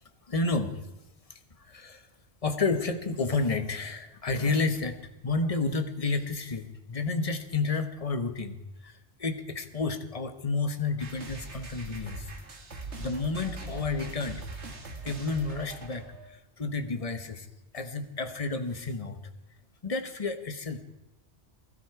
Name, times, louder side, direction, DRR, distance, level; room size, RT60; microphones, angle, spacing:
voice 1, 0.3-0.7 1.3-2.1 2.4-8.6 8.8-12.3 13.0-14.4 15.0-17.5 17.7-19.2 19.8-20.8, left 3 dB, 30° left, 8 dB, 1.2 m, -31 dB
sound 1, 11.0-16.3, right 3 dB, 75° right, 2.2 m, -42 dB
19.5 x 13.0 x 4.8 m, 1.0 s
omnidirectional pair, 1.2 m